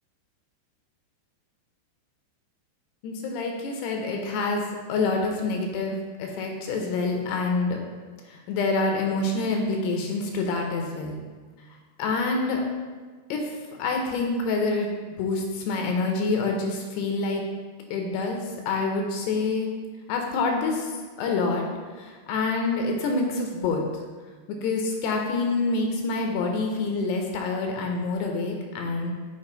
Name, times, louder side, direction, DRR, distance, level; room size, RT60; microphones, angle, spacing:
voice 1, 3.0-4.6 4.9-7.8 8.3-11.2 12.0-12.6 13.3-13.5 13.8-14.9 15.2-17.4 17.9-19.7 20.1-20.9 21.2-21.6 22.0-23.8 24.6-29.1, left 3 dB, 80° left, 2 dB, 2.7 m, -27 dB
7.2 x 4.9 x 3.9 m, 1.4 s
omnidirectional pair, 4.9 m